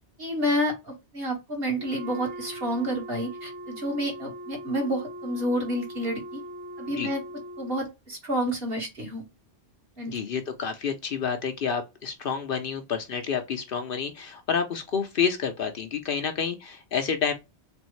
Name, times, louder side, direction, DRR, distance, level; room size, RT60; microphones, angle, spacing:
voice 1, 0.2-6.4 6.8-7.2 7.6-9.3 10.0-10.2, equal, 60° right, 1.7 m, -29 dB
Wind instrument woodwind instrument, 1.7-7.8, right 1 dB, 85° right, 1.0 m, -40 dB
voice 2, 10.1-17.3, left 6 dB, 60° left, 0.7 m, -29 dB
3.5 x 3.4 x 3.0 m
omnidirectional pair, 1.2 m